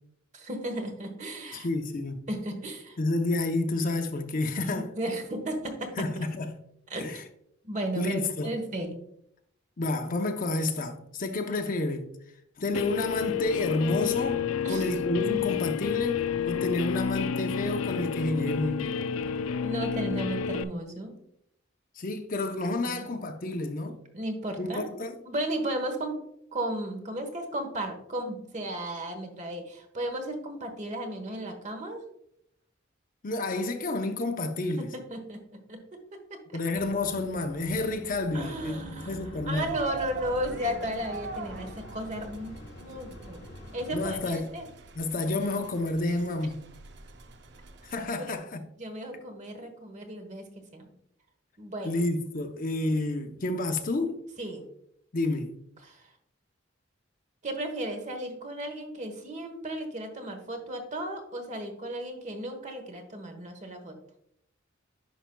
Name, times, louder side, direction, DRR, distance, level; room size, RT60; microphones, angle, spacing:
voice 1, 0.3-1.7 2.3-3.0 4.7-6.1 6.9-7.0 7.6-9.0 14.6-14.9 19.6-21.1 22.9-23.0 24.1-24.9 25.3-26.2 26.5-32.0 34.8-36.0 36.3-36.6 38.3-43.4 43.7-44.7 48.1-48.4 48.8-50.4 50.7-50.9 51.6-52.0 54.4-54.6 55.8-56.1 57.4-64.0, right 1 dB, 35° right, 1.2 m, -35 dB
voice 2, 1.5-2.2 3.0-4.9 6.0-6.5 7.0-7.2 7.9-8.5 9.8-12.1 12.6-19.0 22.0-24.0 24.6-25.1 33.2-34.9 36.5-39.7 43.9-44.5 45.0-46.6 47.8-48.6 51.8-54.3 55.1-55.5, left 2 dB, 45° left, 0.7 m, -30 dB
Guitar, 12.7-20.6, left 8 dB, 80° left, 0.4 m, -30 dB
sound 1, 36.7-44.2, left 1 dB, 60° left, 1.0 m, -45 dB
sound 2, 39.5-48.1, right 5 dB, 60° right, 0.6 m, -44 dB
10.0 x 5.7 x 2.3 m
head